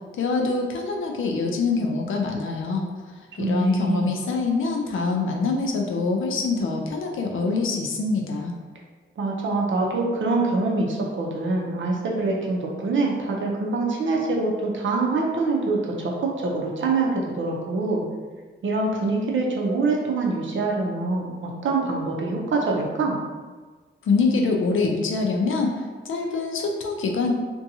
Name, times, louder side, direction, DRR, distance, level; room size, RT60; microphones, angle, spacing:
voice 1, 0.2-2.9 3.4-8.5 24.0-27.3, left 3 dB, 90° left, 1 dB, 0.4 m, -24 dB
voice 2, 3.4-4.1 9.2-18.0 18.6-23.2, right 3 dB, 75° right, -2 dB, 0.6 m, -25 dB
2.6 x 2.2 x 2.7 m, 1.4 s
cardioid pair, 80°, 20 cm